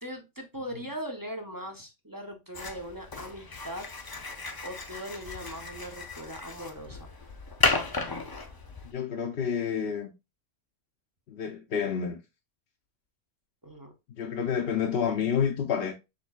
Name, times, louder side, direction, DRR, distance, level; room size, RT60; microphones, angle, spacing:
voice 1, 0.0-3.9 4.6-7.1 13.6-13.9, equal, 25° right, 0.5 m, -40 dB
sound 1, 2.5-8.9, left 3 dB, 35° left, 0.3 m, -33 dB
voice 2, 8.8-10.1 11.3-12.2 14.2-15.9, left 7 dB, 60° left, 0.7 m, -29 dB
6.0 x 3.6 x 2.3 m
omnidirectional pair, 1.3 m